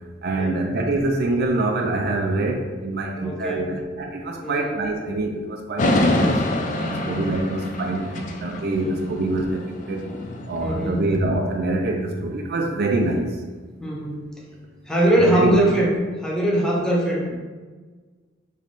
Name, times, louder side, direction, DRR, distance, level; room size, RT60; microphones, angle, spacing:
voice 1, 0.2-6.4 6.7-10.0 10.5-13.4 15.3-15.6, right 2 dB, 55° right, 1 dB, 0.4 m, -25 dB
voice 2, 3.2-3.8 4.4-4.8 7.0-7.3 8.8-9.0 10.1-10.3 10.6-11.1 13.8-14.2 14.9-15.9 16.2-17.4, right 1 dB, 5° left, -3 dB, 0.7 m, -22 dB
sound 1, 5.8-11.1, left 1 dB, 40° left, 0.4 m, -26 dB
3.4 x 3.1 x 3.9 m, 1.4 s
head